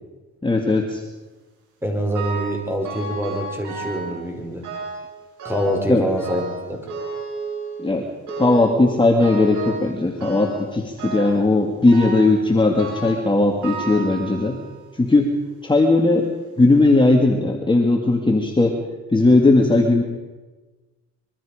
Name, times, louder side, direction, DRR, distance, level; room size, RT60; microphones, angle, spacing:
voice 1, 0.4-1.0 5.9-6.1 7.8-8.1 8.4-14.6 14.9-15.3 15.6-16.3 16.6-18.8 19.1-20.0, left 2 dB, 15° left, 1 dB, 2.3 m, -17 dB
voice 2, 1.8-4.7 5.4-6.4 6.7-6.9, equal, 10° right, 2 dB, 5.2 m, -25 dB
sound 1, 2.1-2.6 2.8-4.1 4.6-5.1 5.4-5.9 6.2-7.8 8.3-8.7 9.2-9.9 10.2-10.7 11.0-11.4 11.9-12.3 12.8-13.2 13.6-14.7 15.3-15.4 16.2-16.3 16.8-16.9, right 4 dB, 90° right, 7.2 m, -32 dB
25.0 x 23.0 x 5.1 m, 1.3 s
cardioid pair, 90°, 30 cm